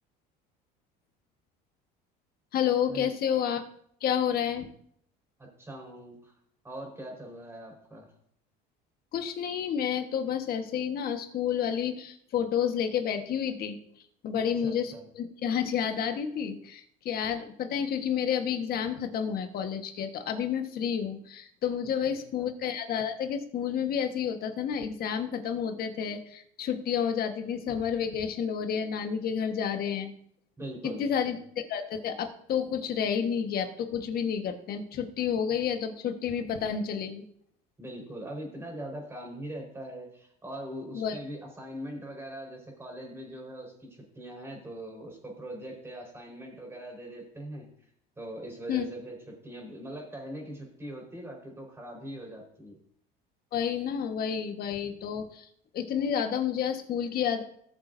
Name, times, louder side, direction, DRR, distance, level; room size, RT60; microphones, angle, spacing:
voice 1, 2.5-3.6 4.0-4.7 9.1-13.8 14.2-30.1 30.8-37.2 40.9-41.2 48.7-48.8 53.5-55.5 55.7-57.4, left 8 dB, 50° left, 6 dB, 1.4 m, -30 dB
voice 2, 5.4-6.2 6.6-8.1 14.3-15.1 22.1-22.5 30.6-31.3 37.8-47.7 48.2-49.2 49.4-52.8, right 1 dB, 15° right, 0 dB, 4.5 m, -41 dB
18.5 x 7.4 x 2.7 m, 0.68 s
supercardioid pair, 110°, 20 cm